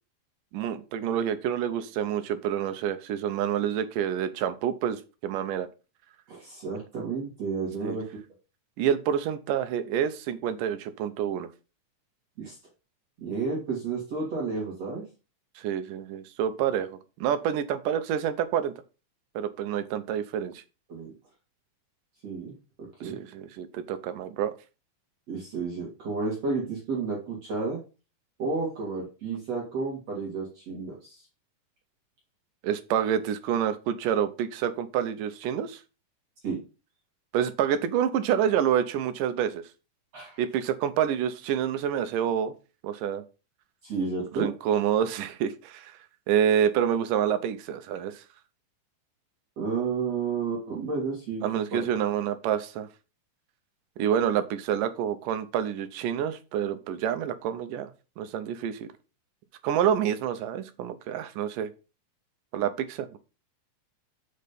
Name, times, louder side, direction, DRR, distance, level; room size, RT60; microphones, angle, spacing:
voice 1, 0.5-5.7 7.8-8.0 8.8-11.5 15.6-18.7 19.4-20.6 23.0-24.5 32.6-35.8 37.3-39.6 40.4-42.5 42.8-43.2 44.3-45.9 46.3-48.2 51.4-52.9 54.0-57.9 58.2-58.9 59.6-61.7 62.5-63.2, right 9 dB, 85° right, 11 dB, 2.4 m, -28 dB
voice 2, 6.3-8.1 12.4-12.6 13.2-15.0 20.9-21.1 22.2-23.2 25.3-27.8 28.4-31.3 36.4-36.6 40.1-40.4 43.8-44.5 49.6-51.8, right 4 dB, 55° right, -3 dB, 3.2 m, -31 dB
6.5 x 6.4 x 5.2 m, 0.32 s
omnidirectional pair, 3.8 m